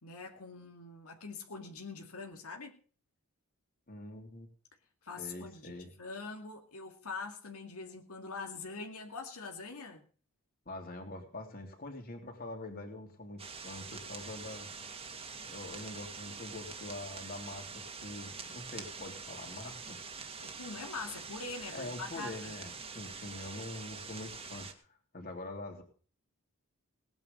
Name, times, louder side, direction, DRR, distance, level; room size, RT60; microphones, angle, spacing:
voice 1, 0.0-2.8 5.0-10.0 20.4-22.6, left 4 dB, 85° left, 3 dB, 2.3 m, -44 dB
voice 2, 3.9-4.5 5.2-5.9 10.6-14.7 15.4-20.0 21.7-25.8, left 2 dB, 40° left, 3 dB, 3.4 m, -44 dB
sound 1, 13.4-24.7, right 5 dB, 25° right, 2.0 m, -45 dB
19.0 x 9.6 x 5.4 m, 0.40 s
head